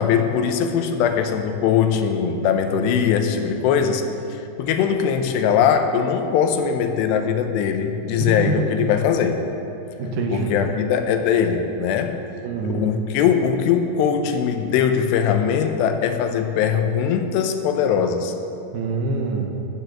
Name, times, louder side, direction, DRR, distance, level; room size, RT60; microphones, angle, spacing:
voice 1, 0.0-4.0 4.3-9.4 10.3-12.2 12.6-18.3, left 7 dB, 85° left, 6 dB, 2.9 m, -21 dB
voice 2, 8.2-8.6 10.0-10.6 12.4-12.9 18.7-19.5, right 4 dB, 75° right, 2 dB, 2.9 m, -25 dB
12.0 x 7.1 x 7.7 m, 2.8 s
omnidirectional pair, 4.8 m